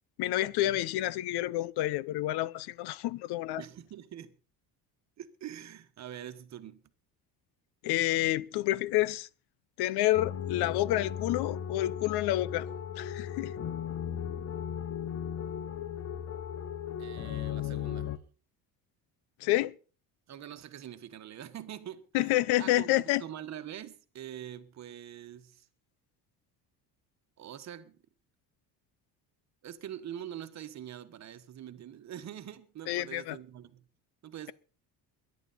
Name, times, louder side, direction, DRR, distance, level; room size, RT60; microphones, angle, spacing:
voice 1, 0.2-3.6 7.8-9.3 9.8-12.7 13.0-13.5 19.4-19.7 22.1-23.2 32.9-33.4, left 15 dB, 80° left, 0.8 m, -29 dB
voice 2, 3.6-4.3 5.2-6.8 17.0-18.2 20.3-25.7 27.4-28.0 29.6-33.8 34.2-34.5, right 10 dB, 45° right, 1.4 m, -44 dB
sound 1, 10.1-18.2, left 9 dB, 40° left, 1.0 m, -36 dB
22.0 x 11.0 x 4.2 m
cardioid pair, 150°, 39 cm